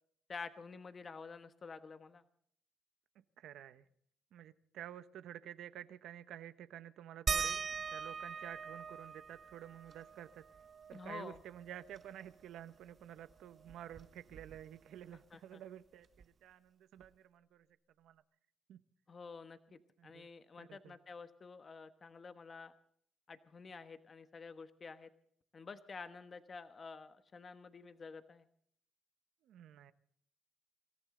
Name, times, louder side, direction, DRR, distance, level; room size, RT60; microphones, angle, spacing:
voice 1, 0.3-2.2 10.9-11.4 15.3-15.6 19.1-22.7 23.3-25.1 25.5-28.4, left 4 dB, 40° left, 10 dB, 1.3 m, -50 dB
voice 2, 3.4-3.8 4.3-10.5 10.9-17.7 18.0-18.2 18.7-18.8 20.0-20.3 20.6-21.0 29.4-29.9, right 11 dB, 80° right, 12 dB, 1.0 m, -51 dB
sound 1, 7.3-12.4 12.7-12.8 13.2-14.9 16.2-16.3 17.0-17.1, right 6 dB, 45° right, 0.6 m, -42 dB
26.0 x 14.5 x 3.8 m, 0.63 s
cardioid pair, 90°, 0 cm